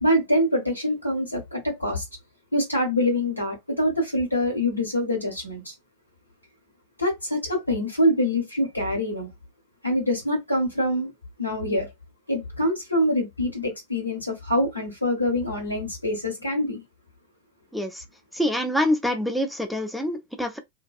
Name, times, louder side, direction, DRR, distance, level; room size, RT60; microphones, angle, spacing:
voice 1, 0.0-2.0 2.5-5.7 7.0-9.3 9.8-11.1 11.4-11.9 12.3-16.8, left 1 dB, 85° left, 1.3 m, -25 dB
voice 2, 17.7-18.0 18.3-20.6, left 1 dB, ahead, 0.4 m, -26 dB
2.6 x 2.3 x 2.4 m
figure-of-eight pair, 90°, 0 cm